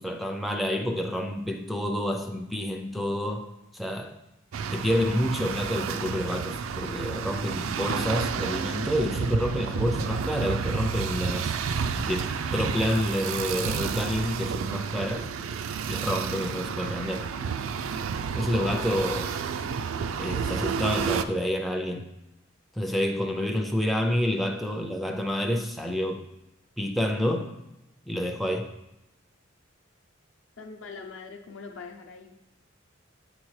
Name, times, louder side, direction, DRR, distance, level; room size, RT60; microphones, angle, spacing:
voice 1, 0.0-4.2 4.7-11.6 12.0-15.3 15.9-17.3 18.4-19.5 20.2-22.1 22.8-26.2 26.8-27.5 28.1-28.7, equal, ahead, 4 dB, 0.4 m, -28 dB
sound 1, 4.5-21.2, right 6 dB, 80° right, 0.4 m, -30 dB
voice 2, 30.6-32.5, left 4 dB, 70° left, 2 dB, 0.7 m, -43 dB
8.7 x 4.2 x 3.1 m, 0.90 s
head